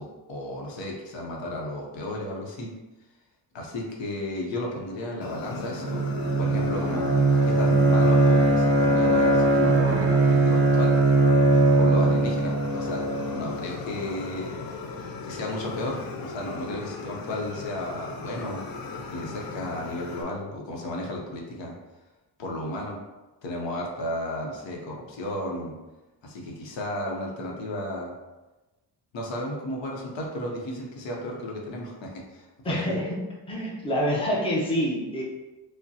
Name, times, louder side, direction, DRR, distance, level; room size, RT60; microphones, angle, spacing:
voice 1, 0.0-2.7 3.5-6.0 6.4-7.0 7.4-10.9 11.7-13.1 13.3-14.5 15.2-18.6 19.1-21.7 22.4-23.0 23.4-25.7 26.2-28.1 29.1-33.0, left 1 dB, 80° left, -1 dB, 0.9 m, -33 dB
Fire, 5.2-20.2, left 4 dB, 55° left, 0.5 m, -38 dB
Bowed string instrument, 5.8-13.6, right 2 dB, 35° right, 0.4 m, -20 dB
voice 2, 32.6-33.2 33.5-35.2, equal, 10° left, -4 dB, 0.7 m, -26 dB
5.0 x 2.1 x 2.8 m, 1.1 s
wide cardioid pair, 145°, 44 cm